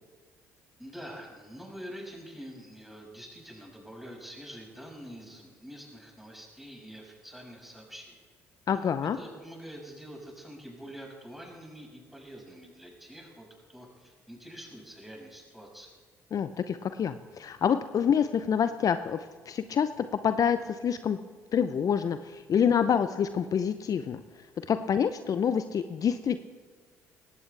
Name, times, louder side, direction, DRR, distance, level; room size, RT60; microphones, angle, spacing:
voice 1, 0.8-8.2 9.2-15.9, equal, ahead, -1 dB, 6.0 m, -46 dB
voice 2, 8.7-9.2 16.3-21.2 21.5-24.2 24.7-26.4, left 7 dB, 45° left, 11 dB, 0.7 m, -27 dB
19.0 x 17.0 x 3.4 m, 1.5 s
hypercardioid pair, 50°, 8 cm